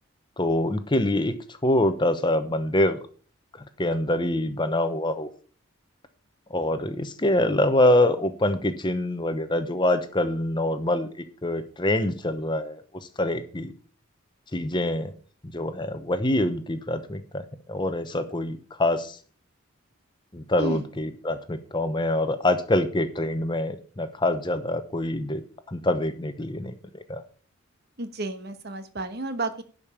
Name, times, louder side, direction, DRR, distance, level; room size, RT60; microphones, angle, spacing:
voice 1, 0.4-1.4 1.6-3.0 3.8-5.3 6.5-12.8 13.2-13.7 14.5-15.1 15.5-19.2 20.3-25.4 25.7-27.2, left 1 dB, 20° left, 10 dB, 0.8 m, -25 dB
voice 2, 28.0-29.6, right 2 dB, 50° right, 9 dB, 1.2 m, -32 dB
11.5 x 5.3 x 7.2 m, 0.42 s
head